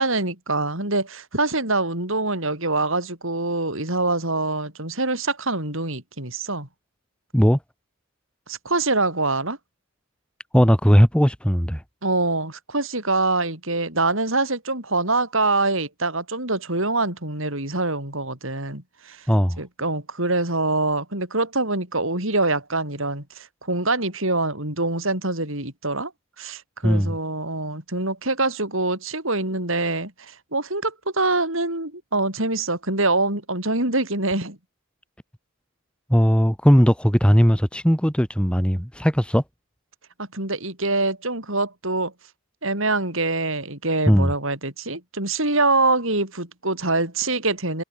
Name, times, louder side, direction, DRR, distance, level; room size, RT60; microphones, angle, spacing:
voice 1, 0.0-6.7 8.5-9.6 12.0-19.3 19.6-26.1 26.4-34.6 40.2-42.1 42.6-47.8, right 2 dB, 65° right, 7.8 m, -24 dB
voice 2, 10.5-11.8 19.3-19.6 26.8-27.2 36.1-39.4 44.1-44.3, equal, 5° left, 3.4 m, -18 dB
head